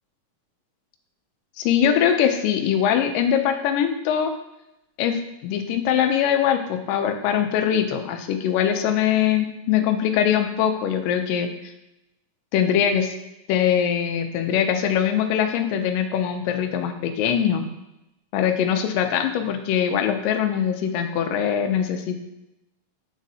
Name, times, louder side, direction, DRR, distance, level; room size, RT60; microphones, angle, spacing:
voice 1, 1.6-4.3 5.0-11.5 12.5-13.1 13.5-17.6 18.3-22.2, left 9 dB, 80° left, 6 dB, 2.2 m, -22 dB
7.2 x 5.1 x 2.7 m, 0.90 s
omnidirectional pair, 4.0 m